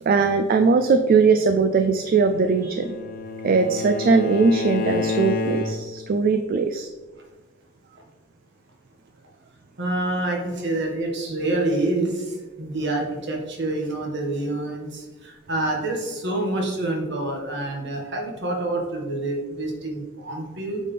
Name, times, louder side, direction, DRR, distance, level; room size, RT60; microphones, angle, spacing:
voice 1, 0.0-3.0 3.4-6.9, right 4 dB, 45° right, 7 dB, 0.3 m, -20 dB
Bowed string instrument, 2.1-6.1, left 3 dB, 50° left, 0.6 m, -29 dB
voice 2, 9.8-12.3 12.6-20.8, right 2 dB, 60° right, 0 dB, 1.6 m, -27 dB
8.5 x 4.2 x 3.3 m, 1.3 s
head